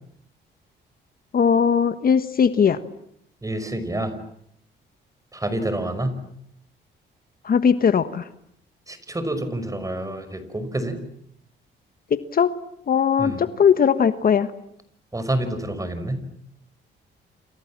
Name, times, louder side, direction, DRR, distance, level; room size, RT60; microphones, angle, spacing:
voice 1, 1.3-2.8 7.4-8.3 12.1-12.5 12.9-14.5, left 7 dB, 45° left, 11 dB, 1.4 m, -19 dB
voice 2, 3.4-4.1 5.3-6.2 8.9-11.0 13.2-13.4 15.1-16.2, right 1 dB, 15° right, 11 dB, 5.7 m, -28 dB
29.0 x 27.5 x 7.5 m, 0.73 s
cardioid pair, 90°, 20 cm